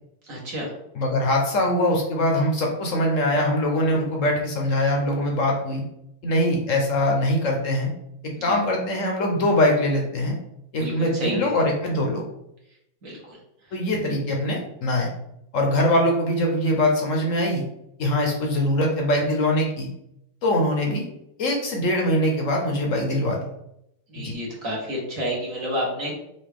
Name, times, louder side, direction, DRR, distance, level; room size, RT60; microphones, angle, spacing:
voice 1, 0.3-0.7 10.7-11.6 13.0-13.4 24.1-26.1, equal, 45° right, -4 dB, 1.5 m, -30 dB
voice 2, 0.9-5.8 6.2-7.9 8.4-10.4 10.7-12.2 13.7-15.1 15.5-17.6 18.0-19.9 20.4-21.0 21.4-23.4 24.2-24.3, left 1 dB, 55° left, 1 dB, 1.0 m, -22 dB
5.7 x 2.6 x 3.4 m, 0.80 s
omnidirectional pair, 2.1 m